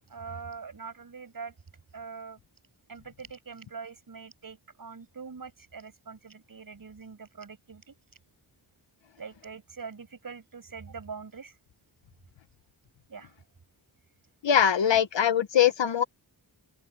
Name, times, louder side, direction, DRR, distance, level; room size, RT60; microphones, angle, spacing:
voice 1, 0.1-1.5 1.9-2.4 2.9-7.9 9.2-11.5 13.1-13.3 14.9-15.0, right 5 dB, 50° right, 6.6 m, -43 dB
voice 2, 14.4-16.0, left 9 dB, 75° left, 1.3 m, -22 dB
open air
wide cardioid pair, 165°, 44 cm